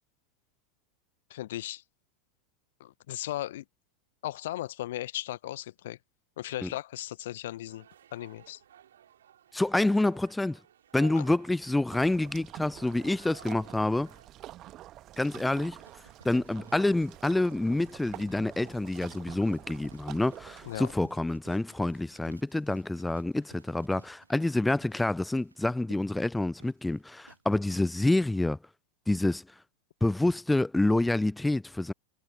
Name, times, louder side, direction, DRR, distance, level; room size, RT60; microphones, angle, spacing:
voice 1, 1.3-1.8 2.8-3.6 4.2-6.0 6.4-8.6 11.1-11.3 20.7-20.9, left 14 dB, 60° left, 0.8 m, -37 dB
sound 1, 7.7-14.3, right 10 dB, 65° right, 6.0 m, -55 dB
voice 2, 9.5-10.6 10.9-14.1 15.2-15.8 16.2-28.6 29.1-29.4 30.0-31.9, left 2 dB, 5° left, 0.3 m, -27 dB
sound 2, 11.9-21.0, right 14 dB, 35° right, 1.4 m, -47 dB
sound 3, 15.8-27.4, right 3 dB, 80° right, 2.5 m, -58 dB
figure-of-eight pair, 85°, 0 cm